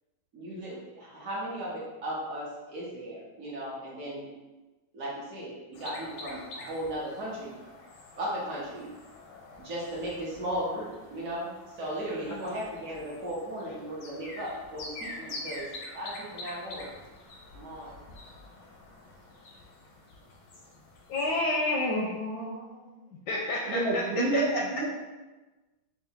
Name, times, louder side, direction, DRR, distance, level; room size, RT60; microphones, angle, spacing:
voice 1, 0.3-4.3 4.9-7.5 8.2-8.9 9.6-16.9 17.5-18.0, right 1 dB, 55° right, -6 dB, 1.0 m, -36 dB
sound 1, 5.7-21.4, left 2 dB, 90° left, 1.6 m, -46 dB
voice 2, 21.1-23.0 23.3-24.6, left 2 dB, 75° left, -1 dB, 1.0 m, -30 dB
voice 3, 23.7-24.9, right 2 dB, 85° right, 1 dB, 1.4 m, -28 dB
5.6 x 2.2 x 2.8 m, 1.2 s
omnidirectional pair, 2.1 m